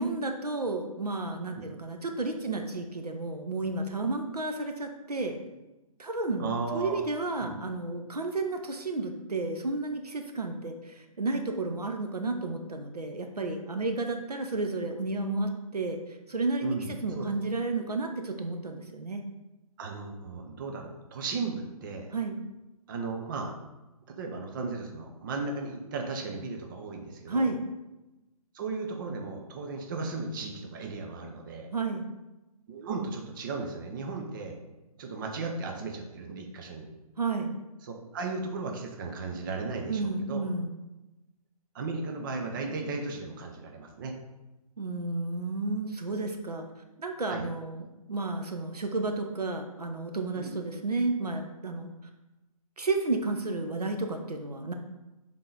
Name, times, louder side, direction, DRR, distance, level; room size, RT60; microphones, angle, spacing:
voice 1, 0.0-5.4 6.0-19.3 22.1-22.4 27.3-27.6 31.7-32.0 37.2-37.5 39.9-40.7 44.8-46.7 47.0-51.9 52.8-54.7, right 3 dB, 80° right, 5 dB, 0.9 m, -32 dB
voice 2, 6.4-7.0 7.4-7.6 16.6-17.3 19.8-22.1 22.9-23.5 24.1-27.5 28.5-31.7 32.7-34.6 35.0-36.9 37.8-40.4 41.7-44.1 47.3-47.5 50.4-50.6, right 3 dB, 35° right, 2 dB, 0.8 m, -35 dB
7.4 x 3.8 x 3.9 m, 1.0 s
figure-of-eight pair, 140°, 20 cm